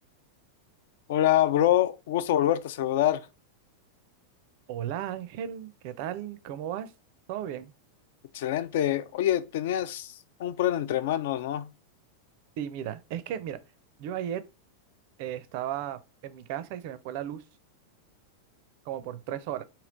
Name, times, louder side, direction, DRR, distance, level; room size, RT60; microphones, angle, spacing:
voice 1, 1.1-3.2 8.3-10.1 10.4-11.7, left 12 dB, 55° left, 0.3 m, -25 dB
voice 2, 4.7-6.9 7.3-7.7 12.6-13.6 14.0-14.4 15.2-17.4 18.9-19.6, right 10 dB, 45° right, 0.4 m, -35 dB
3.1 x 2.8 x 3.8 m
figure-of-eight pair, 90°, 0 cm